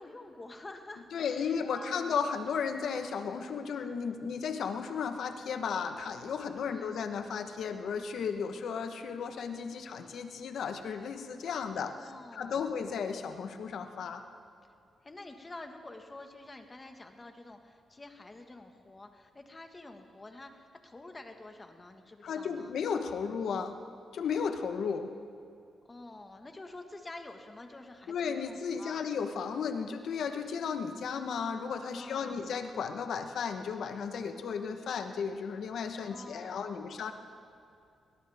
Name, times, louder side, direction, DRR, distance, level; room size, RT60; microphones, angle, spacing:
voice 1, 0.0-2.2 6.7-7.1 11.7-12.6 15.0-22.7 25.9-29.0 31.9-32.5 36.0-37.0, left 2 dB, 25° left, 5 dB, 1.6 m, -48 dB
voice 2, 1.1-11.9 12.3-14.2 22.2-23.8 24.1-25.1 28.1-37.1, left 6 dB, 75° left, 7 dB, 1.1 m, -34 dB
21.5 x 18.5 x 3.6 m, 2.4 s
cardioid pair, 85°, 0 cm